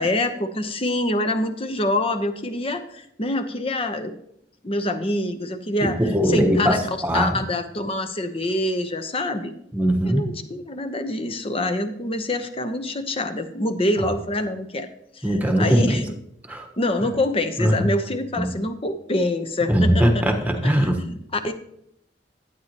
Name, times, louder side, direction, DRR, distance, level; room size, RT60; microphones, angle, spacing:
voice 1, 0.0-4.1 4.6-6.0 6.3-6.8 7.1-9.5 10.0-14.9 15.2-16.0 16.8-20.2 20.6-21.5, left 1 dB, 35° left, 8 dB, 0.9 m, -25 dB
voice 2, 6.0-7.4 9.7-10.3 15.2-16.0 16.5-16.7 17.6-17.9 18.4-18.5 19.7-21.0, equal, 10° right, 3 dB, 1.2 m, -20 dB
12.0 x 9.2 x 3.0 m, 0.74 s
head